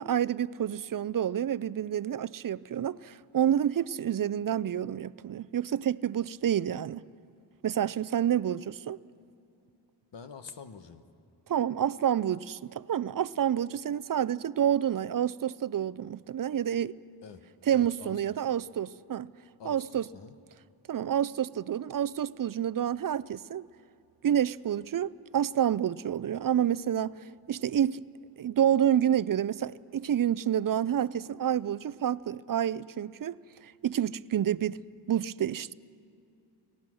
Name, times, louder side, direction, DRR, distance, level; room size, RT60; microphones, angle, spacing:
voice 1, 0.0-7.0 7.6-9.0 11.5-17.0 17.7-19.3 19.6-20.0 20.9-23.7 24.2-27.2 27.5-28.0 28.4-34.8 35.1-35.7, right 10 dB, 50° right, 0.5 m, -28 dB
voice 2, 10.1-11.0 17.2-17.4 17.7-18.2 19.6-20.3, left 5 dB, 80° left, 1.1 m, -46 dB
29.5 x 15.5 x 6.3 m
cardioid pair, 60°, 43 cm